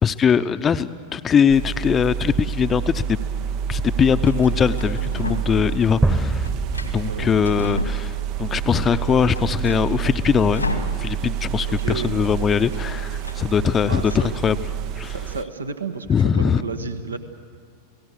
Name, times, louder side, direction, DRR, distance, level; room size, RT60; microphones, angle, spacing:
voice 1, 0.0-3.2 3.7-6.5 6.8-10.7 11.0-14.6 15.0-15.1 16.1-16.6, left 7 dB, 20° left, 13 dB, 0.7 m, -21 dB
sound 1, 1.5-15.4, right 9 dB, 40° right, 0.6 m, -28 dB
sound 2, 2.3-3.1 4.2-5.7 6.0-8.5 8.9-9.0 9.2-11.4 11.7-11.9 12.1-14.2, left 2 dB, 85° left, 2.0 m, -34 dB
sound 3, 6.0-8.0, right 2 dB, 10° right, 1.1 m, -25 dB
voice 2, 11.7-12.1 13.8-14.3 15.1-17.2, right 4 dB, 75° right, 9 dB, 1.3 m, -32 dB
30.0 x 18.0 x 6.7 m, 2.1 s
figure-of-eight pair, 90°, 0 cm